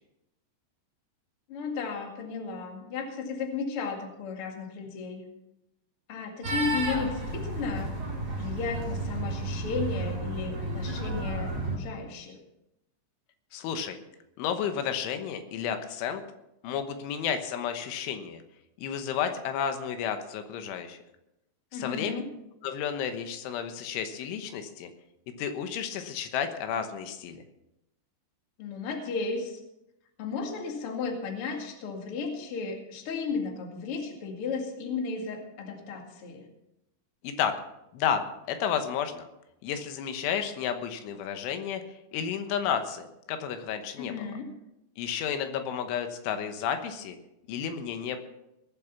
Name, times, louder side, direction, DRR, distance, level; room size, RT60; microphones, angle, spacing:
voice 1, 1.5-5.2 6.1-8.0 8.4-12.4 21.7-22.3 28.6-29.6 30.2-36.5 44.0-44.5, left 5 dB, 45° left, 2 dB, 2.1 m, -34 dB
sound 1, 6.4-11.8, right 2 dB, 25° right, 2.6 m, -32 dB
voice 2, 13.5-14.0 14.4-16.2 16.6-18.4 18.8-21.0 21.7-22.2 22.6-24.9 25.4-27.4 37.2-37.6 37.9-39.3 39.6-41.8 42.1-44.2 45.0-47.2 47.5-48.2, left 8 dB, 85° left, 7 dB, 3.6 m, -31 dB
20.0 x 7.6 x 5.9 m, 0.88 s
omnidirectional pair, 5.4 m